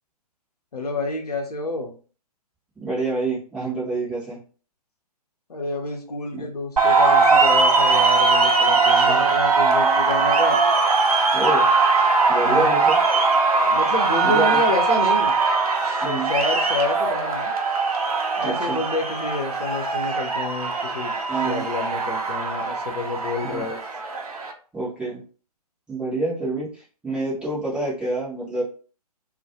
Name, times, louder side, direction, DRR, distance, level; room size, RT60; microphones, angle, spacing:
voice 1, 0.7-1.9 5.5-10.6 12.4-12.8 13.6-15.3 15.8-17.5 18.4-21.1 21.4-23.8, left 3 dB, 70° left, 3 dB, 0.7 m, -29 dB
voice 2, 2.8-4.4 6.3-6.5 8.9-9.2 11.3-11.7 12.3-13.0 14.2-14.6 16.0-16.3 18.4-18.8 21.3-21.6 23.4-23.6 24.7-25.2 25.9-28.6, right 2 dB, 5° right, -8 dB, 0.5 m, -27 dB
sound 1, 6.8-24.5, right 4 dB, 65° right, 0.6 m, -20 dB
2.2 x 2.1 x 2.8 m, 0.39 s
figure-of-eight pair, 125°, 20 cm